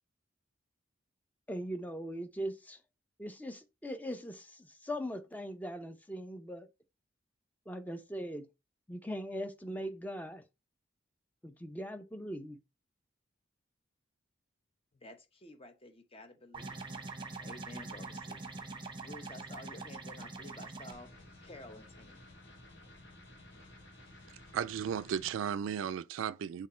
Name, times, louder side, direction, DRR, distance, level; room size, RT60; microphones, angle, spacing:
voice 1, 1.5-2.8 3.2-6.7 7.7-8.5 8.9-10.4 11.4-12.6, equal, 10° left, 0.6 m, -40 dB
voice 2, 14.9-16.8 17.4-18.5 19.0-21.1 21.4-22.2, left 1 dB, 30° left, 0.9 m, -51 dB
sound 1, 16.5-20.9, right 3 dB, 25° right, 0.9 m, -44 dB
sound 2, 20.9-25.3, left 1 dB, 65° left, 2.4 m, -54 dB
voice 3, 24.5-26.7, right 8 dB, 85° right, 0.3 m, -35 dB
6.4 x 3.7 x 4.3 m
head